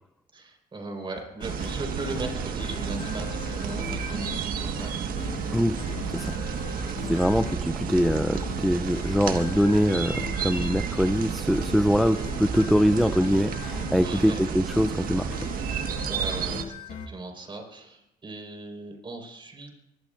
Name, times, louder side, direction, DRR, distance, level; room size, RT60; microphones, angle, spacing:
voice 1, 0.3-5.0 13.9-14.4 16.1-19.7, right 3 dB, 30° right, 3 dB, 4.7 m, -38 dB
sound 1, 1.2-17.1, left 5 dB, 50° left, 2.3 m, -41 dB
sound 2, 1.4-16.6, right 6 dB, 60° right, 1.6 m, -31 dB
voice 2, 6.8-15.4, equal, ahead, 9 dB, 0.5 m, -23 dB
24.5 x 21.5 x 2.6 m, 0.89 s
cardioid pair, 110°, 17 cm